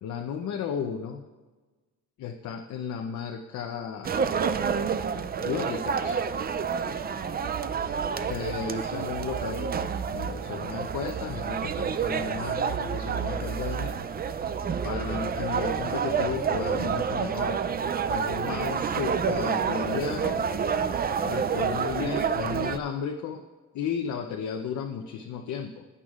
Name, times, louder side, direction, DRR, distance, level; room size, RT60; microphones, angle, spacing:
voice 1, 0.0-1.2 2.2-4.2 5.4-6.2 8.3-9.7 10.1-14.0 14.8-17.6 18.1-20.5 21.2-23.4 23.7-25.8, left 7 dB, 75° left, 3 dB, 0.7 m, -34 dB
sound 1, 4.0-22.8, right 6 dB, 30° right, 0.4 m, -29 dB
15.0 x 8.8 x 2.4 m, 1.3 s
cardioid pair, 90°, 30 cm